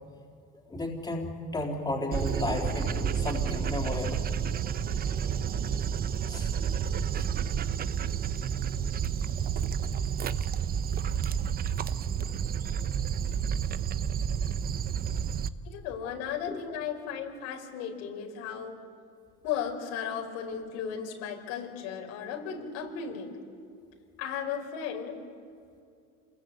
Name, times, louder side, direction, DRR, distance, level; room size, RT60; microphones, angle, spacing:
voice 1, 0.5-4.2 6.3-6.5 16.5-16.6, left 2 dB, 15° left, -1 dB, 3.7 m, -33 dB
Dog, 2.1-15.5, right 8 dB, 30° right, 0.8 m, -30 dB
voice 2, 15.6-18.8 19.4-23.4 24.2-25.2, left 7 dB, 85° left, 2 dB, 4.9 m, -35 dB
27.0 x 21.0 x 9.2 m, 2.4 s
cardioid pair, 130°, 29 cm